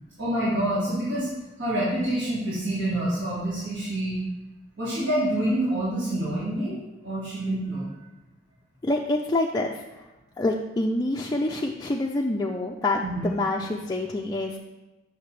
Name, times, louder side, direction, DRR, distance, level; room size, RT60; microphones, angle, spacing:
voice 1, 0.2-1.3 1.6-4.2 4.8-7.9 13.0-13.3, right 1 dB, 85° right, -10 dB, 2.0 m, -27 dB
voice 2, 8.8-9.7 10.4-14.6, left 2 dB, 20° left, -1 dB, 0.4 m, -26 dB
7.2 x 5.9 x 3.2 m, 1.1 s
head